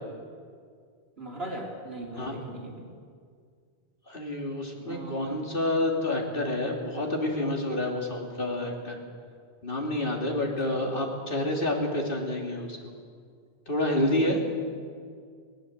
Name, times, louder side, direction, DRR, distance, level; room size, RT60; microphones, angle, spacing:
voice 1, 1.2-2.9 4.8-5.5 10.6-10.8, right 1 dB, 70° right, -1 dB, 3.6 m, -39 dB
voice 2, 4.1-9.0 9.6-12.9 13.7-14.4, left 1 dB, 55° left, 0 dB, 3.1 m, -28 dB
19.5 x 19.0 x 8.0 m, 2.1 s
omnidirectional pair, 1.1 m